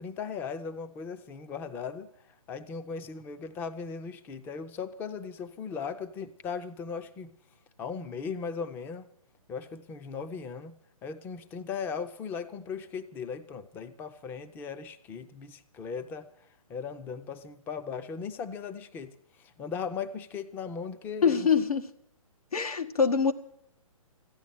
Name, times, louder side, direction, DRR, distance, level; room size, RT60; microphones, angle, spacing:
voice 1, 0.0-7.3 7.8-9.1 9.5-16.3 16.7-21.5, left 6 dB, 10° left, 0.5 m, -38 dB
voice 2, 21.2-21.8 22.5-23.3, left 6 dB, 85° left, 1.6 m, -24 dB
14.0 x 9.8 x 9.3 m
hypercardioid pair, 145°, 18 cm